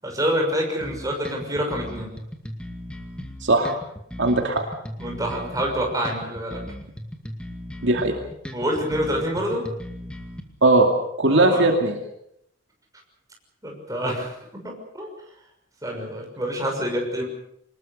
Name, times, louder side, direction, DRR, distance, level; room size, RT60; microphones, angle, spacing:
voice 1, 0.0-2.1 5.0-6.6 8.5-9.7 11.3-11.6 13.6-15.1 15.8-17.2, equal, 15° right, 1 dB, 6.2 m, -27 dB
sound 1, 0.8-10.4, equal, 5° left, 2.3 m, -37 dB
voice 2, 3.4-3.7 4.2-4.6 7.8-8.1 10.6-10.9 11.2-11.9, right 2 dB, 60° right, 3 dB, 2.6 m, -18 dB
25.5 x 20.5 x 6.7 m, 0.75 s
head